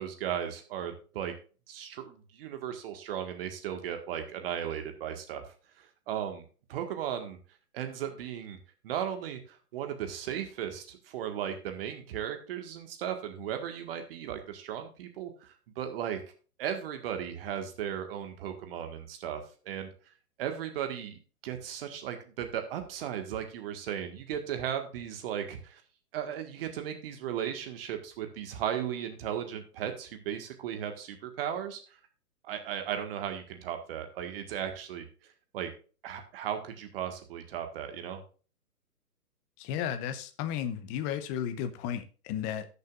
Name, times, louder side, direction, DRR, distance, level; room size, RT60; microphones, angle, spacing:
voice 1, 0.0-1.3 1.7-5.4 5.8-7.4 7.7-8.6 8.8-16.2 16.6-19.9 20.4-25.8 26.1-32.0 32.4-35.0 35.5-35.7 36.0-38.2, right 9 dB, 40° right, 6 dB, 1.7 m, -36 dB
voice 2, 39.6-42.7, left 9 dB, 15° left, 9 dB, 0.7 m, -34 dB
17.0 x 6.8 x 2.5 m, 0.37 s
hypercardioid pair, 130°, 47 cm